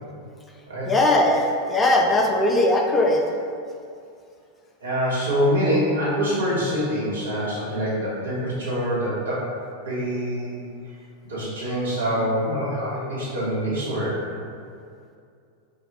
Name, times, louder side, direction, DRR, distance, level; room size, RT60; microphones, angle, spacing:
voice 1, 0.9-3.2, left 1 dB, 15° left, 1 dB, 0.5 m, -19 dB
voice 2, 4.8-9.5 9.8-10.7 11.3-14.3, equal, 70° right, -8 dB, 1.3 m, -25 dB
3.3 x 2.7 x 4.1 m, 2.3 s
figure-of-eight pair, 90°, 0 cm